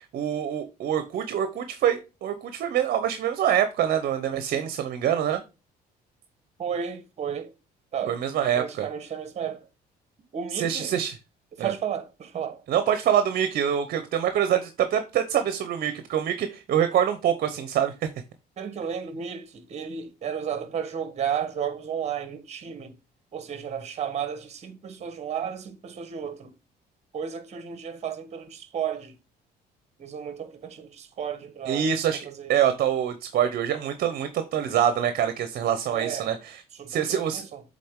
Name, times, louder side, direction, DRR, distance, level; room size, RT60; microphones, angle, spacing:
voice 1, 0.0-5.4 8.1-8.9 10.5-11.2 11.6-11.7 12.7-17.9 31.6-36.6 36.9-37.4, right 9 dB, 60° right, 0.9 m, -25 dB
voice 2, 6.6-7.5 7.9-8.2 8.5-9.7 10.3-11.0 11.6-12.6 18.6-22.9 23.3-26.5 27.1-29.1 30.0-31.9 32.2-32.5 35.9-36.3 36.7-37.1 37.3-37.6, right 8 dB, 40° right, 1.3 m, -33 dB
7.5 x 3.9 x 3.7 m
cardioid pair, 110°, 17 cm